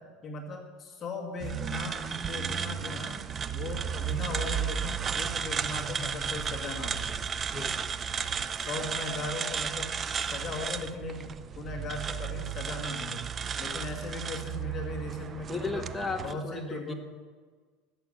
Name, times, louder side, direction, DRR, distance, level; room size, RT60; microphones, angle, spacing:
voice 1, 0.2-3.2 3.5-7.2 8.6-9.9 10.3-13.2 13.6-15.9 16.2-16.9, left 3 dB, 25° left, 0 dB, 2.1 m, -38 dB
sound 1, 1.4-16.3, right 7 dB, 25° right, 0.4 m, -34 dB
voice 2, 7.5-7.9 15.5-16.9, left 3 dB, 5° left, 3 dB, 1.1 m, -35 dB
13.0 x 8.0 x 7.3 m, 1.5 s
supercardioid pair, 155°, 0 cm